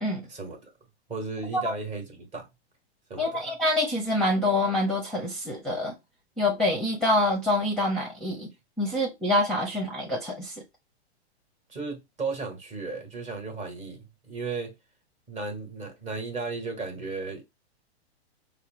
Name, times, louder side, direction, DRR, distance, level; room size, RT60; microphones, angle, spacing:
voice 1, 0.3-0.7 1.1-2.5 3.1-3.4 11.7-14.7 15.3-17.4, right 4 dB, 20° right, 1.1 m, -35 dB
voice 2, 3.2-6.0 6.4-8.5 8.8-10.5, left 1 dB, ahead, 0.8 m, -26 dB
4.7 x 2.1 x 3.1 m
hypercardioid pair, 130°, 33 cm